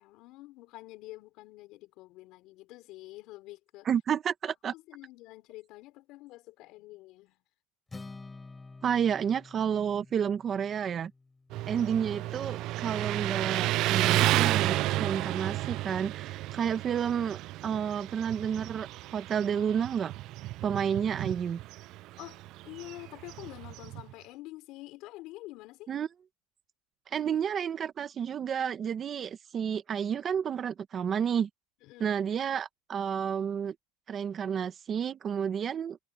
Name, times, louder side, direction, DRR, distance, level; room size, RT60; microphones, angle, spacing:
voice 1, 0.0-3.9 4.7-7.4 11.7-11.8 22.2-25.9 31.8-32.2, left 19 dB, 45° left, 5.4 m, -47 dB
voice 2, 3.8-4.7 8.8-11.1 11.7-18.9 19.1-20.1 20.6-21.6 25.9-26.1 27.1-31.5 32.0-33.7 34.1-36.0, right 8 dB, 25° right, 1.0 m, -30 dB
Acoustic guitar, 7.9-12.1, left 3 dB, 10° left, 7.5 m, -49 dB
Motorcycle, 11.5-24.1, right 17 dB, 40° right, 0.3 m, -32 dB
supercardioid pair, 150°, 0 cm